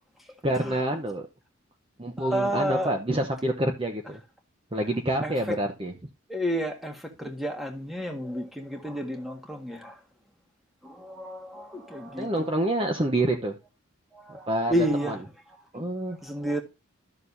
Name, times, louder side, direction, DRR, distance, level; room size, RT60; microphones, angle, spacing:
voice 1, 0.4-1.3 2.0-4.2 4.7-5.9 7.2-7.3 12.2-13.6 14.3-15.2 15.7-16.2, right 1 dB, 25° right, 0.9 m, -27 dB
voice 2, 2.2-2.9 5.2-5.3 6.3-9.9 10.8-12.6 14.1-15.1 15.7-15.8 16.2-16.6, equal, ahead, 1.6 m, -31 dB
12.5 x 6.7 x 2.7 m
head